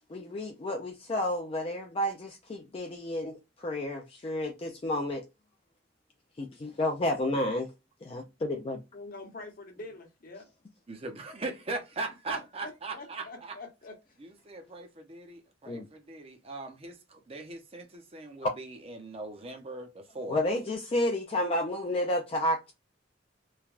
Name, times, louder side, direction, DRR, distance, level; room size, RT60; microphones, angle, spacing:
voice 1, 0.1-5.2 6.4-7.7 8.0-8.8 15.7-15.9 18.4-18.5 20.3-22.7, left 1 dB, 30° left, 0.4 m, -31 dB
voice 2, 8.9-10.5 12.3-14.2, left 2 dB, 50° left, 0.9 m, -45 dB
voice 3, 10.9-13.6 14.2-20.4, right 3 dB, 35° right, 0.6 m, -40 dB
3.2 x 2.2 x 2.4 m
head